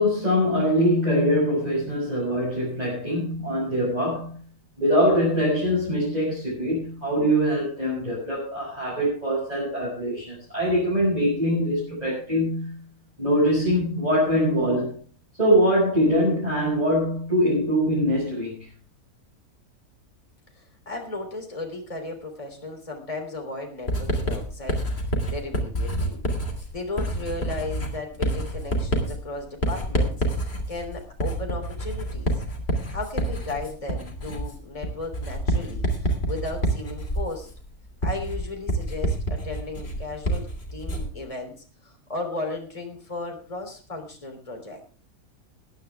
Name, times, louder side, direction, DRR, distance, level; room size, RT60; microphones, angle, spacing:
voice 1, 0.0-4.4 4.8-12.7 13.2-14.9 15.4-18.5, equal, 25° right, -7 dB, 6.8 m, -23 dB
voice 2, 20.5-26.2 26.7-32.3 32.9-37.5 38.0-44.8, left 2 dB, 20° left, 2 dB, 3.3 m, -35 dB
Writing, 23.9-41.2, right 1 dB, 45° left, 3.2 m, -28 dB
20.5 x 10.0 x 3.5 m, 0.38 s
omnidirectional pair, 1.6 m